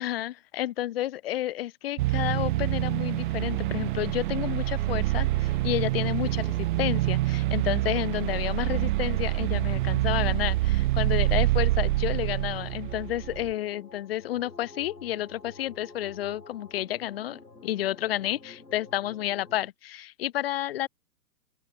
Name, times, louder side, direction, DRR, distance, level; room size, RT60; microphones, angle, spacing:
voice 1, 0.0-20.9, left 13 dB, 35° left, 1.2 m, -31 dB
sound 1, 2.0-13.5, right 18 dB, 30° right, 1.4 m, -26 dB
sound 2, 2.3-19.7, left 3 dB, 80° left, 5.6 m, -49 dB
open air
figure-of-eight pair, 120°, 48 cm